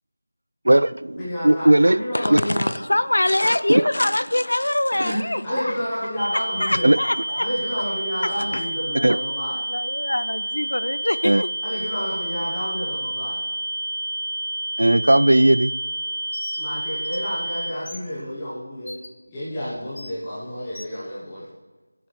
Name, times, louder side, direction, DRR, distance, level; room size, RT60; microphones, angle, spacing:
voice 1, 0.7-2.0 2.3-2.4 3.7-3.8 6.8-7.0 9.0-9.2 11.2-11.4 14.8-15.7, right 1 dB, 80° right, 17 dB, 0.3 m, -16 dB
voice 2, 1.2-2.7 4.9-6.8 7.4-9.6 11.6-13.4 16.6-21.5, equal, 10° left, -11 dB, 1.1 m, -30 dB
voice 3, 2.1-5.8 6.3-7.5 8.2-8.6 9.0-11.5, left 1 dB, 90° left, 16 dB, 0.5 m, -24 dB
sound 1, 6.2-17.7, right 1 dB, 50° right, 0.9 m, -29 dB
Bird, 16.3-16.6 17.0-17.2 17.9-18.0 18.9-19.1 20.0-20.1 20.7-20.9, left 2 dB, 40° left, 0.8 m, -39 dB
18.5 x 7.8 x 3.3 m, 1.3 s
figure-of-eight pair, 180°, 0 cm